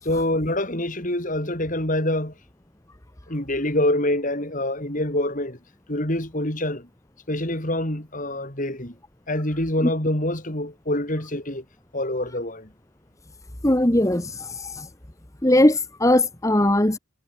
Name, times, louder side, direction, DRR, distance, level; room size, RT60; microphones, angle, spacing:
voice 1, 0.0-2.4 3.3-5.6 5.9-6.9 7.3-9.0 9.3-11.6 11.9-12.7, left 1 dB, 35° left, 4.1 m, -25 dB
voice 2, 13.6-14.9 15.4-17.0, left 1 dB, 15° left, 1.3 m, -19 dB
head